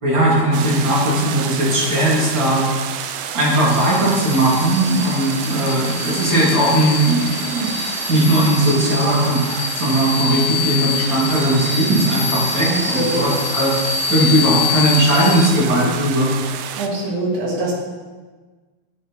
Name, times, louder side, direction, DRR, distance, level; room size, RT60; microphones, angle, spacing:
voice 1, 0.0-2.6 3.3-13.7 14.1-16.3, right 1 dB, 35° right, -7 dB, 2.6 m, -18 dB
sound 1, 0.5-16.9, right 9 dB, 80° right, 2.2 m, -30 dB
sound 2, 3.7-15.5, left 5 dB, 75° left, 1.9 m, -25 dB
voice 2, 12.7-13.3 16.7-17.7, right 2 dB, 60° right, -5 dB, 3.0 m, -23 dB
10.5 x 6.4 x 3.1 m, 1.4 s
omnidirectional pair, 4.4 m